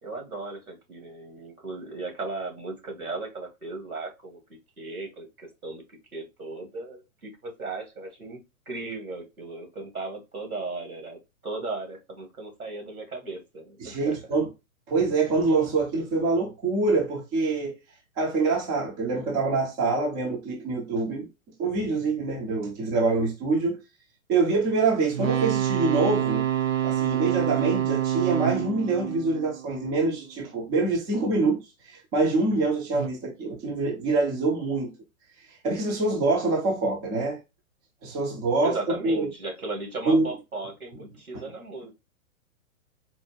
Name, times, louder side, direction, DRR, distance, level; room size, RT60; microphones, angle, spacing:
voice 1, 0.0-4.4 4.8-8.4 8.7-14.2 38.6-41.9, right 3 dB, 90° right, 1.9 m, -36 dB
voice 2, 13.8-14.5 14.9-17.8 18.2-21.3 21.6-23.8 24.3-26.5 26.8-31.6 31.9-34.9 35.6-37.4 38.0-39.3 40.1-40.3, right 3 dB, 10° right, 0.4 m, -25 dB
sound 1, 25.1-30.2 32.9-33.1, right 11 dB, 65° right, 0.6 m, -27 dB
4.1 x 2.2 x 3.2 m
figure-of-eight pair, 115°, 42 cm